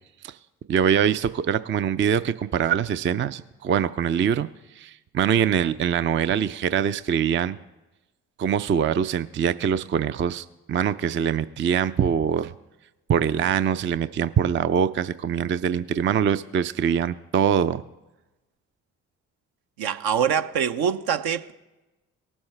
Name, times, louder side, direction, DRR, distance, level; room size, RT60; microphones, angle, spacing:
voice 1, 0.7-4.5 4.8-7.6 8.4-12.5 13.1-17.8, right 8 dB, 30° right, 0.5 m, -23 dB
voice 2, 19.8-21.5, right 8 dB, 60° right, 0.8 m, -24 dB
19.0 x 7.1 x 3.3 m
hypercardioid pair, 45°, 43 cm